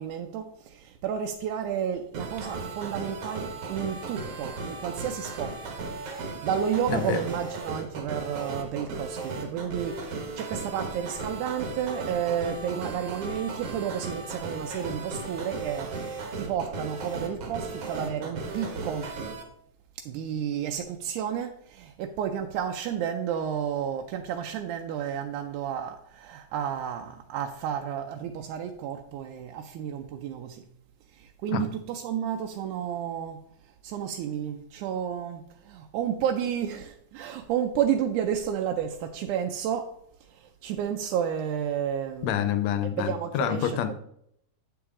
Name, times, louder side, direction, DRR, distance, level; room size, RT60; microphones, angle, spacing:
voice 1, 0.0-5.7 6.1-19.1 20.1-30.6 31.1-33.4 33.8-39.9 40.3-42.4 43.0-43.9, right 9 dB, 85° right, 2.1 m, -31 dB
sound 1, 2.1-19.4, right 3 dB, 60° right, 1.9 m, -36 dB
voice 2, 6.9-7.3 31.5-31.7 42.2-43.9, left 9 dB, 75° left, 1.8 m, -27 dB
8.6 x 6.1 x 3.7 m
omnidirectional pair, 3.5 m